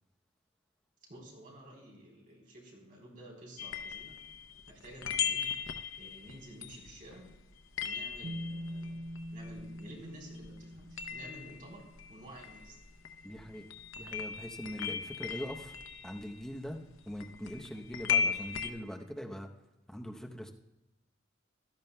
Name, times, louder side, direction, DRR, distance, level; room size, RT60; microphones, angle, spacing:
voice 1, 1.1-4.2 4.7-5.4 6.0-7.2 7.8-9.0 9.3-11.8 12.1-12.8, right 1 dB, 45° right, -2 dB, 3.7 m, -51 dB
sound 1, 3.6-10.2 10.4-18.7, left 7 dB, 90° left, 0.8 m, -38 dB
Bass guitar, 8.2-12.2 13.3-13.4, equal, 75° right, 0.8 m, -44 dB
voice 2, 13.2-13.6 14.0-15.7 16.0-16.8 17.1-19.5 19.9-20.5, equal, 5° left, 1 dB, 0.8 m, -42 dB
16.0 x 12.5 x 2.2 m, 1.0 s
head